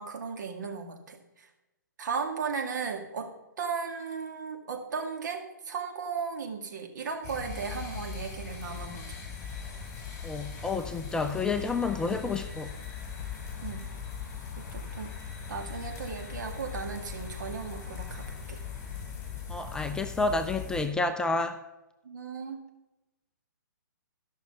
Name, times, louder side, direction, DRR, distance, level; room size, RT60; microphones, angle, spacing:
voice 1, 0.0-1.5 2.0-3.3 3.6-9.1 13.6-13.9 14.6-15.1 15.5-18.6 22.0-22.6, right 5 dB, 65° right, 3 dB, 1.9 m, -36 dB
sound 1, 7.2-20.8, left 6 dB, 25° left, 4.2 m, -39 dB
voice 2, 10.2-12.7 19.5-21.6, left 3 dB, 5° left, 7 dB, 0.4 m, -30 dB
13.0 x 6.0 x 5.7 m, 0.99 s
hypercardioid pair, 130°, 11 cm